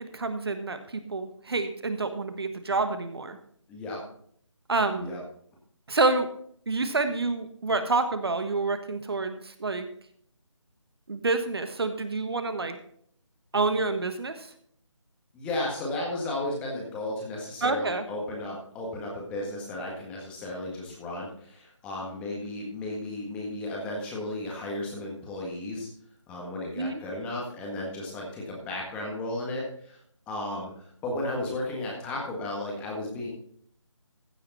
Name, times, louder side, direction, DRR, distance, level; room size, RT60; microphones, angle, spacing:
voice 1, 0.1-3.4 4.7-5.2 5.9-6.3 6.7-9.9 11.1-12.8 13.5-14.5 17.6-18.0 26.8-27.0, right 3 dB, 50° right, 9 dB, 1.3 m, -28 dB
voice 2, 3.7-4.0 5.0-5.2 15.3-25.9 26.3-30.0 30.3-33.3, left 1 dB, 5° left, -2 dB, 1.7 m, -34 dB
15.0 x 6.8 x 4.2 m, 0.63 s
figure-of-eight pair, 160°, 16 cm